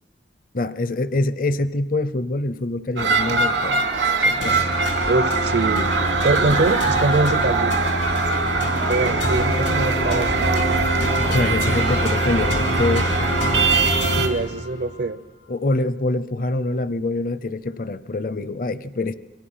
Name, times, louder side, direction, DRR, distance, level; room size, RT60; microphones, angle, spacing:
voice 1, 0.5-4.7 11.3-13.2 15.5-19.1, left 2 dB, 50° left, 15 dB, 0.7 m, -25 dB
sound 1, 3.0-14.3, right 4 dB, 85° right, 2.5 m, -22 dB
sound 2, 4.4-15.0, left 1 dB, 85° left, 3.5 m, -26 dB
voice 2, 5.1-5.9 6.2-8.0 8.9-10.8 14.0-15.2, right 2 dB, 70° right, 14 dB, 0.8 m, -24 dB
28.0 x 23.5 x 5.7 m, 1.0 s
head